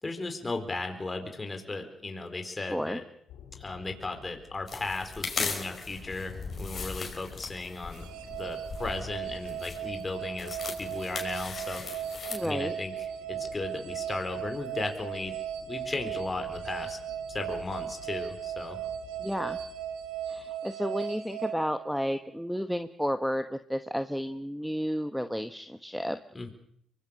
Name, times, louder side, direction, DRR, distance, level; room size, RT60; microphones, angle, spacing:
voice 1, 0.0-3.0 3.6-11.8 12.4-15.4 15.6-17.0 17.3-18.8 26.3-26.5, left 3 dB, 25° left, 5 dB, 4.3 m, -36 dB
voice 2, 2.6-3.0 12.3-12.7 19.2-19.6 20.3-26.2, equal, ahead, 8 dB, 1.1 m, -32 dB
sound 1, 3.3-20.6, left 9 dB, 80° left, 3.6 m, -53 dB
sound 2, 4.7-12.4, left 5 dB, 45° left, 5.1 m, -38 dB
sound 3, 7.9-22.3, right 9 dB, 90° right, 1.8 m, -37 dB
24.0 x 19.0 x 6.8 m, 0.70 s
supercardioid pair, 65°, 0 cm